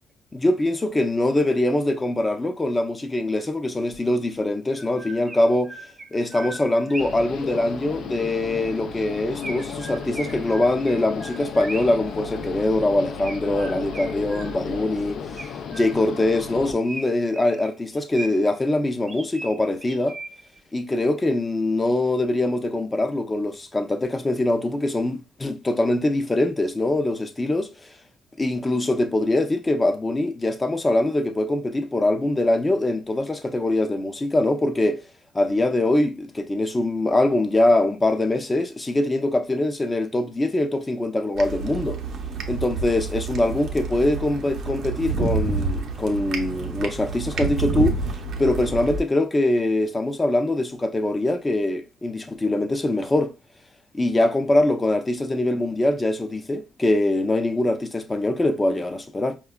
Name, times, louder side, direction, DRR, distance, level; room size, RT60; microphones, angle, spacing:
voice 1, 0.3-5.7 6.1-20.2 20.7-27.9 28.4-35.0 35.3-42.0 42.5-48.0 48.4-53.3 53.9-59.4, left 1 dB, 20° left, 0.5 m, -23 dB
Chirp tweet, 4.7-7.3 9.4-12.1 13.2-14.8 15.4-16.2 16.8-18.6 19.1-20.6, right 2 dB, 25° right, 0.6 m, -39 dB
sound 1, 7.0-16.7, left 5 dB, 70° left, 0.4 m, -34 dB
sound 2, 41.3-49.0, right 4 dB, 70° right, 0.7 m, -28 dB
4.7 x 2.3 x 2.2 m
cardioid pair, 90°, 0 cm